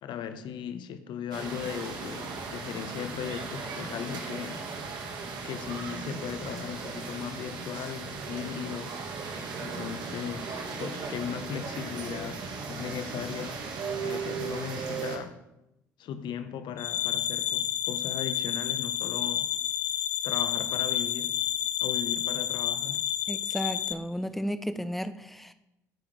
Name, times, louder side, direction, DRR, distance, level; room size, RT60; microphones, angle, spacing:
voice 1, 0.0-4.6 5.4-13.6 14.0-15.4 16.0-19.5 20.2-21.4 21.8-23.1, left 8 dB, 55° left, 1.2 m, -37 dB
sound 1, 1.3-15.2, right 4 dB, 55° right, 2.8 m, -37 dB
sound 2, 16.8-23.9, left 11 dB, 75° left, 0.8 m, -30 dB
voice 2, 23.3-25.5, equal, ahead, 0.9 m, -33 dB
22.5 x 10.0 x 3.5 m
figure-of-eight pair, 55°, 9 cm